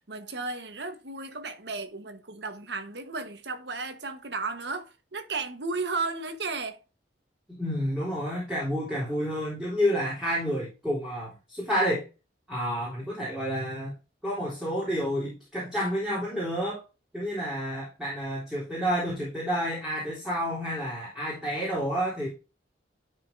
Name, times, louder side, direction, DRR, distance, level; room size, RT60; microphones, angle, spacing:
voice 1, 0.0-6.8, right 3 dB, 75° right, 1.3 m, -34 dB
voice 2, 7.5-12.0 12.5-13.9 14.2-16.8 17.1-22.3, equal, 5° right, 3.6 m, -29 dB
12.0 x 5.2 x 2.7 m
head